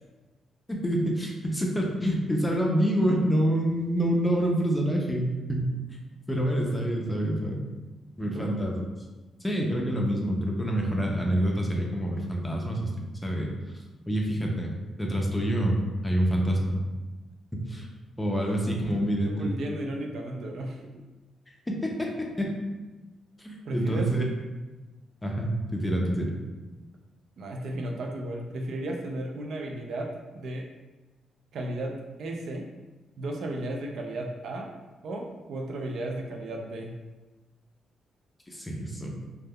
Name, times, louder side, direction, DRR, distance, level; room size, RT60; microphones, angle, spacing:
voice 1, 0.8-5.7 6.3-7.6 8.2-8.8 9.4-12.9 13.2-13.5 14.1-14.7 15.0-15.8 16.0-16.8 17.7-17.9 18.2-19.5 21.7-22.5 23.4-24.2 25.2-26.3 38.5-39.3, equal, 10° left, 0 dB, 0.5 m, -27 dB
voice 2, 8.2-8.5 18.4-18.5 18.9-19.0 19.2-20.8 23.7-24.1 27.4-30.7 31.5-32.7 33.2-34.7 35.0-36.9, right 1 dB, 70° right, 1 dB, 0.4 m, -34 dB
3.3 x 2.1 x 2.2 m, 1.2 s
cardioid pair, 110°, 0 cm